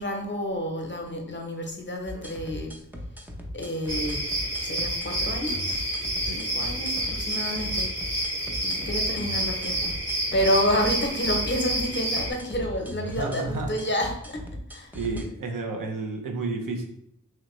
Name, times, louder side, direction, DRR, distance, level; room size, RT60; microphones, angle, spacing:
voice 1, 0.0-2.7 3.5-4.2 4.6-5.8 6.3-7.9 8.6-10.0 10.3-14.4 14.7-14.9, equal, 35° left, 3 dB, 0.8 m, -29 dB
sound 1, 2.1-15.2, left 1 dB, 5° right, 0.6 m, -38 dB
sound 2, 3.9-12.3, equal, 40° right, 1.2 m, -29 dB
voice 2, 13.1-13.7 14.9-16.9, right 3 dB, 85° right, 3 dB, 0.6 m, -31 dB
3.2 x 2.8 x 3.0 m, 0.72 s
cardioid pair, 50°, 32 cm